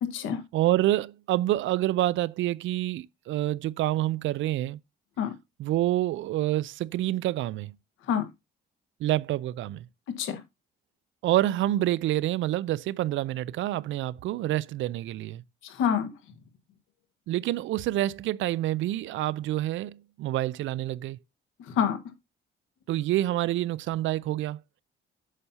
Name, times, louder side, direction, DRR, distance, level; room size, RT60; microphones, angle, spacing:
voice 1, 0.0-0.4 5.2-5.3 8.1-8.3 10.2-10.4 15.6-16.1 21.7-22.0, left 8 dB, 90° left, 1.4 m, -27 dB
voice 2, 0.5-4.8 5.6-7.7 9.0-9.8 11.2-15.4 17.3-21.2 22.9-24.6, right 14 dB, 75° right, 0.4 m, -27 dB
8.1 x 2.8 x 5.6 m
cardioid pair, 90°, 20 cm